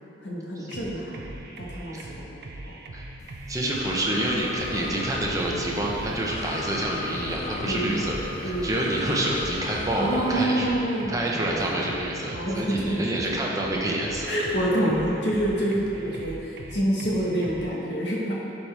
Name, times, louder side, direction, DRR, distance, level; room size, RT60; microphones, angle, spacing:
voice 1, 0.2-2.7 7.6-7.9 8.4-8.7 9.9-11.8 12.3-13.1 14.2-18.4, right 1 dB, 65° left, -4 dB, 1.3 m, -27 dB
sound 1, 0.7-17.7, right 2 dB, 55° right, 0.5 m, -41 dB
Breathing, 3.2-10.3, left 3 dB, 35° left, 0.3 m, -36 dB
voice 2, 3.5-10.7 11.1-14.4, right 1 dB, 20° right, -3 dB, 0.8 m, -28 dB
10.5 x 4.3 x 3.4 m, 2.9 s
head